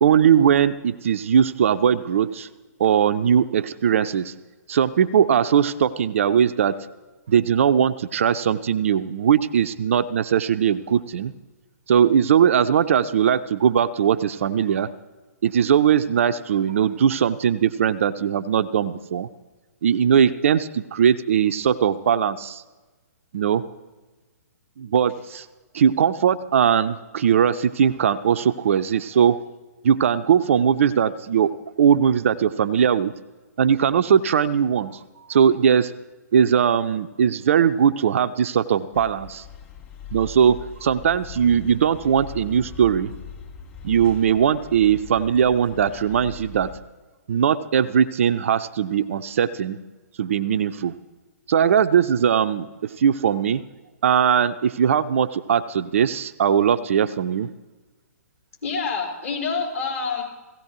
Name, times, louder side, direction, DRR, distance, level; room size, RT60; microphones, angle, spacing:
voice 1, 0.0-2.5 2.8-4.3 4.7-6.8 7.3-11.3 11.9-14.9 15.4-19.3 19.8-22.6 23.3-23.6 24.8-25.5 25.7-29.4 29.8-33.1 33.6-35.0 35.3-35.9 36.3-39.4 40.1-43.1 43.8-46.7 47.3-49.8 50.2-50.9 51.5-53.6 54.0-57.5, right 8 dB, 50° right, 11 dB, 0.5 m, -20 dB
sound 1, 38.9-46.8, left 7 dB, 25° left, 2.2 m, -41 dB
voice 2, 58.6-60.2, left 5 dB, 55° left, -3 dB, 4.8 m, -27 dB
17.0 x 16.5 x 3.1 m, 1.2 s
figure-of-eight pair, 125°, 9 cm